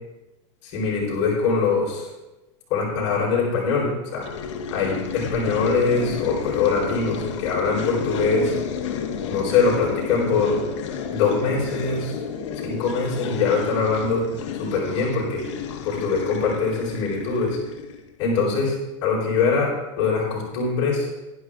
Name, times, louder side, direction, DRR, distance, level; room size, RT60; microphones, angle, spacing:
voice 1, 0.6-2.1 2.7-4.3 4.7-8.5 9.3-10.6 11.1-12.2 12.6-14.2 14.6-15.4 15.8-17.6 18.2-18.8 19.0-21.1, left 4 dB, 40° left, -5 dB, 4.5 m, -23 dB
sound 1, 4.2-18.1, left 7 dB, 65° left, 1.3 m, -31 dB
12.0 x 10.5 x 3.7 m, 1.1 s
supercardioid pair, 170°, 16 cm